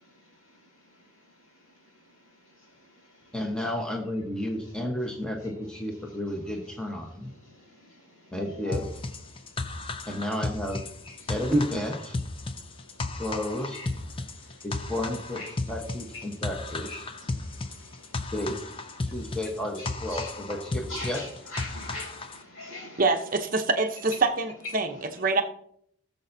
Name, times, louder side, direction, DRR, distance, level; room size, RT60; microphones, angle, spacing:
voice 1, 3.3-7.3 8.3-8.9 10.1-10.8 11.3-12.2 13.2-13.8 14.6-17.1 18.3-18.6 19.1-21.2, equal, 5° left, 1 dB, 1.0 m, -31 dB
sound 1, 8.7-22.4, left 3 dB, 25° left, 0.5 m, -35 dB
voice 2, 20.9-21.3 21.5-23.0, left 2 dB, 70° left, -2 dB, 4.6 m, -39 dB
voice 3, 23.0-25.4, right 3 dB, 40° right, 6 dB, 0.7 m, -25 dB
17.5 x 6.9 x 2.7 m, 0.68 s
head